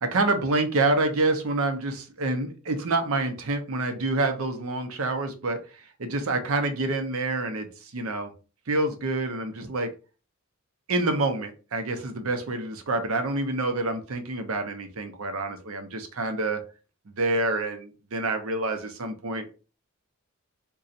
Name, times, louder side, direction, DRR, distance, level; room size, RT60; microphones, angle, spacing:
voice 1, 0.0-8.3 8.7-9.9 10.9-16.6 17.1-19.5, right 2 dB, 75° right, 6 dB, 0.7 m, -27 dB
4.0 x 2.3 x 2.5 m, 0.34 s
head